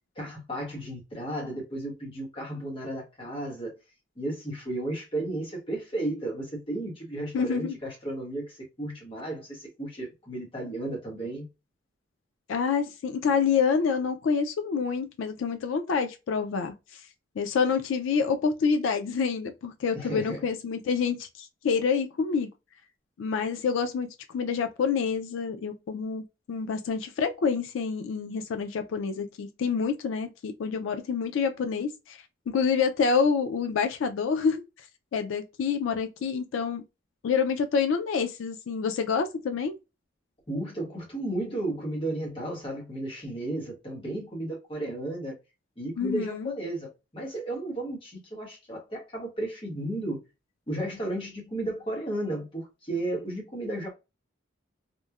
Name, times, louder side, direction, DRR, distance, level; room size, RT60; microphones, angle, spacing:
voice 1, 0.2-3.8 4.2-11.5 19.9-20.4 40.5-45.4 45.8-50.2 50.7-53.9, right 1 dB, 30° left, 1.0 m, -34 dB
voice 2, 7.3-7.8 12.5-16.7 17.4-22.5 23.2-24.1 24.3-32.2 32.5-34.6 35.1-36.8 37.2-39.8 46.0-46.5, left 5 dB, 90° left, 0.4 m, -27 dB
2.9 x 2.0 x 2.3 m
head